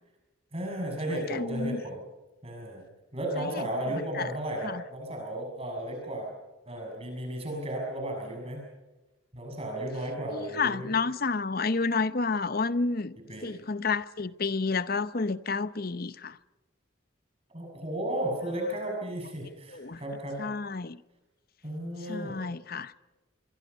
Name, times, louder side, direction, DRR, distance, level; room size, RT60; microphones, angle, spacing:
voice 1, 0.5-2.0 2.4-2.8 3.1-6.3 6.6-8.6 9.3-11.0 13.3-13.5 17.5-20.4 21.6-22.3, right 1 dB, 30° right, 6.7 m, -34 dB
voice 2, 1.1-1.8 3.4-3.6 4.2-4.3 4.6-4.8 10.3-13.2 13.4-16.4 19.7-20.0 20.4-21.0 22.1-22.9, left 4 dB, 50° left, 0.8 m, -30 dB
26.5 x 24.5 x 5.5 m
head